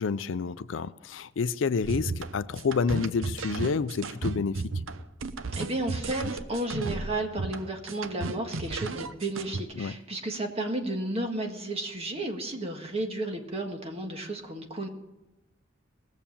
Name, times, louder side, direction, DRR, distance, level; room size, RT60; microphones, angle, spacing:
voice 1, 0.0-4.7 9.8-9.9, left 5 dB, 70° left, 0.4 m, -29 dB
sound 1, 1.8-9.6, right 3 dB, 85° right, 0.7 m, -34 dB
voice 2, 5.5-14.9, right 1 dB, 30° right, 1.7 m, -33 dB
19.0 x 7.2 x 7.1 m
head